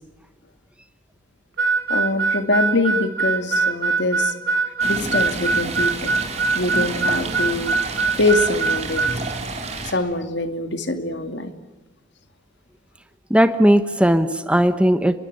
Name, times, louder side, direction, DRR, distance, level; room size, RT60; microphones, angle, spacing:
Harmonica, 1.6-9.2, right 4 dB, 70° right, 3.7 m, -22 dB
voice 1, 1.9-4.3 4.8-6.1 6.5-9.0 9.8-11.5, left 2 dB, 60° left, 9 dB, 2.2 m, -24 dB
Stream, 4.8-9.9, right 3 dB, 35° right, 3.9 m, -30 dB
voice 2, 13.3-15.2, equal, 5° right, 10 dB, 1.0 m, -17 dB
29.5 x 22.0 x 8.8 m, 1.1 s
head